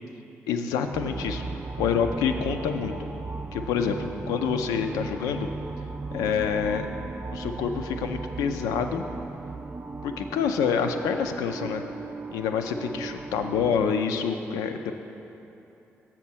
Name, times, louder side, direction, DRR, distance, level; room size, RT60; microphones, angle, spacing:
voice 1, 0.5-1.4 1.8-2.9 3.5-5.5 6.1-6.9 7.3-9.0 10.0-11.8 12.3-14.9, left 7 dB, 75° left, 6 dB, 0.4 m, -27 dB
sound 1, 0.9-13.9, right 4 dB, 25° right, 0.3 m, -37 dB
7.1 x 4.4 x 6.1 m, 2.9 s
hypercardioid pair, 40°, 6 cm